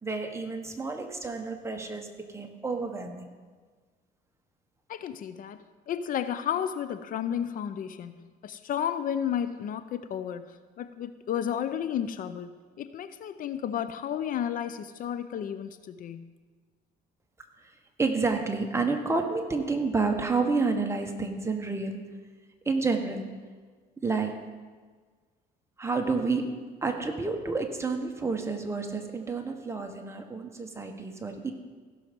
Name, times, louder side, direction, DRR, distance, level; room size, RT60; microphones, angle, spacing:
voice 1, 0.0-3.3 17.6-17.7 18.0-22.2 22.6-23.4 24.0-24.5 25.8-31.5, right 4 dB, 15° right, 4 dB, 1.3 m, -30 dB
voice 2, 4.9-8.1 8.4-10.5 10.8-16.3, left 9 dB, 55° left, 12 dB, 0.5 m, -32 dB
16.0 x 6.4 x 5.3 m, 1.5 s
cardioid pair, 110°, 17 cm